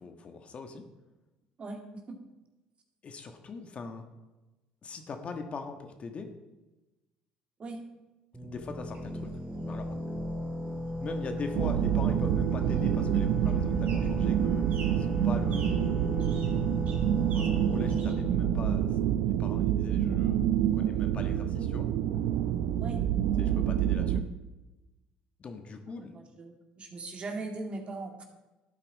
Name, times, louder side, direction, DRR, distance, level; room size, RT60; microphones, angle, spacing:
voice 1, 0.0-0.8 3.0-4.0 4.8-6.3 8.4-9.3 9.6-10.0 11.0-15.8 17.3-21.9 23.4-24.2 25.4-26.2, left 4 dB, 40° left, 5 dB, 1.4 m, -41 dB
voice 2, 1.6-2.2 7.6-7.8 22.8-23.0 26.0-28.2, right 3 dB, 40° right, 2 dB, 2.3 m, -39 dB
sound 1, 8.3-19.8, left 1 dB, 5° right, 2.7 m, -36 dB
sound 2, 8.9-18.1, right 4 dB, 55° right, 3.2 m, -52 dB
sound 3, 11.5-24.2, right 10 dB, 70° right, 0.6 m, -27 dB
12.5 x 8.8 x 4.1 m, 1.1 s
supercardioid pair, 80°, 3 cm